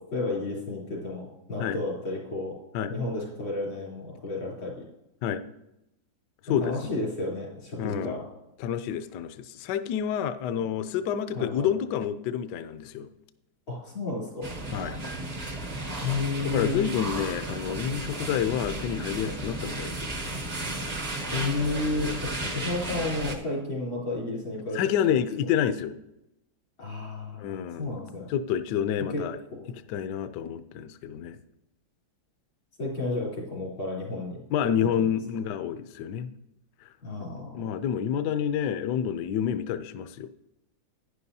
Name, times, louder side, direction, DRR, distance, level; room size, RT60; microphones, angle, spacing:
voice 1, 0.0-2.5 2.9-4.8 6.5-8.2 11.3-11.7 13.7-14.5 15.9-16.8 21.3-24.8 26.8-28.3 29.0-29.2 29.5-29.7 32.8-34.9 37.0-37.6, left 2 dB, 90° left, -4 dB, 4.2 m, -32 dB
voice 2, 6.4-6.8 7.8-8.2 8.6-13.1 14.7-15.0 16.4-20.1 22.4-22.6 24.7-26.0 27.3-28.0 28.3-29.4 29.9-31.4 34.5-36.3 36.8-36.9 37.2-40.3, left 9 dB, 70° left, 11 dB, 1.0 m, -29 dB
sound 1, 14.4-23.4, right 2 dB, 40° right, 0.6 m, -34 dB
11.0 x 9.9 x 2.7 m, 0.86 s
omnidirectional pair, 2.1 m